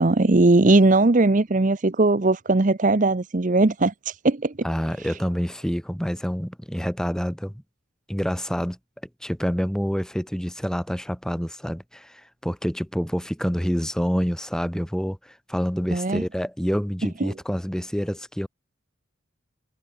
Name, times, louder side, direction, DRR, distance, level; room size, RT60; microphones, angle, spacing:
voice 1, 0.0-4.5 15.9-16.2 17.2-17.3, right 2 dB, 40° right, 0.7 m, -19 dB
voice 2, 4.6-7.5 8.1-8.8 9.2-18.5, equal, 5° left, 4.7 m, -27 dB
head